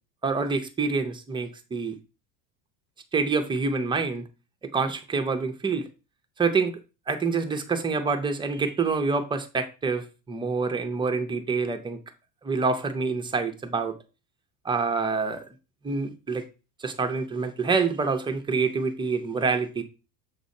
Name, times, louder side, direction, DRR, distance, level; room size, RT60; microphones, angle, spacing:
voice 1, 0.2-2.0 3.1-4.3 4.7-5.9 6.4-6.8 7.1-12.0 12.4-14.0 14.6-15.5 15.8-16.5 16.8-19.8, right 4 dB, 10° right, 0.4 m, -26 dB
7.1 x 2.7 x 5.1 m
cardioid pair, 155°, 44 cm